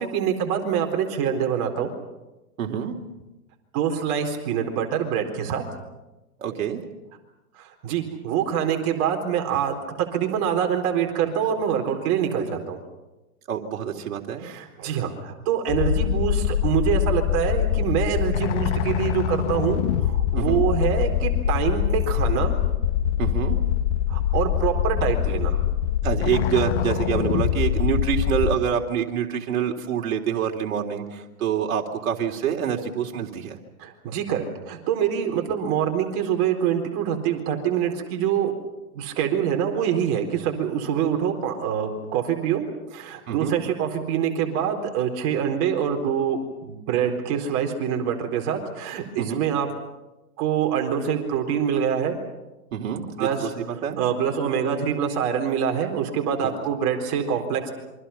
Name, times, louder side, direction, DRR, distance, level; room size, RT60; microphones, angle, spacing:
voice 1, 0.0-1.9 3.7-5.6 7.6-9.8 10.1-12.8 14.4-22.5 24.1-25.6 33.8-38.5 38.9-42.6 42.9-49.7 50.4-52.2 53.2-53.5 54.0-57.7, right 8 dB, 40° right, 3 dB, 4.2 m, -25 dB
voice 2, 2.6-3.0 6.4-6.8 13.5-14.5 20.4-20.6 23.2-23.6 26.0-33.6 43.3-43.5 49.2-49.4 52.7-54.0, right 8 dB, 65° right, 2 dB, 3.5 m, -26 dB
sound 1, 15.7-28.6, left 10 dB, 50° left, 1.7 m, -24 dB
28.0 x 25.0 x 5.9 m, 1.0 s
hypercardioid pair, 130°, 44 cm